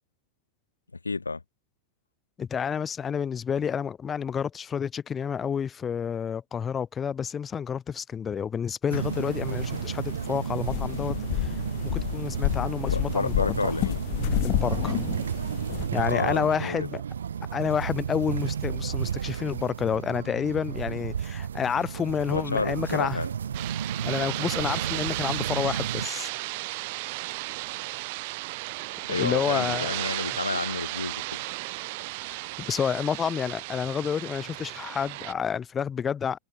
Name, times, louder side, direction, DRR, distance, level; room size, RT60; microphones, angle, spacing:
voice 1, 1.0-1.4 12.8-14.0 15.9-16.9 22.3-23.3 29.1-31.4, left 3 dB, 80° left, 0.5 m, -30 dB
voice 2, 2.4-11.6 11.9-13.7 14.4-15.0 15.9-17.0 17.5-23.2 24.0-26.3 29.1-29.9 32.3-36.4, left 7 dB, 20° left, 0.6 m, -29 dB
sound 1, 8.9-15.9, left 34 dB, 45° left, 1.6 m, -31 dB
sound 2, 8.9-26.1, right 8 dB, 65° right, 0.9 m, -32 dB
sound 3, 23.5-35.3, right 24 dB, 50° right, 2.6 m, -34 dB
figure-of-eight pair, 90°, 0 cm